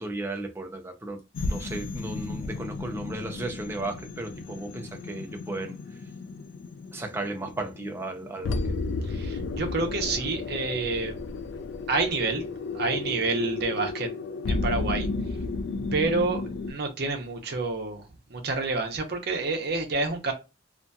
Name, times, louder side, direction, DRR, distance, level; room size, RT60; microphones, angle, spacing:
voice 1, 0.0-6.0 6.9-8.6, right 2 dB, 15° right, 0.5 m, -35 dB
sound 1, 1.3-16.7, left 3 dB, 70° left, 0.3 m, -33 dB
voice 2, 9.1-11.1 11.9-12.4 12.7-14.1 14.5-15.1 15.9-16.4 16.7-18.0 18.3-20.3, right 3 dB, 60° right, 0.7 m, -28 dB
2.6 x 2.5 x 2.2 m
head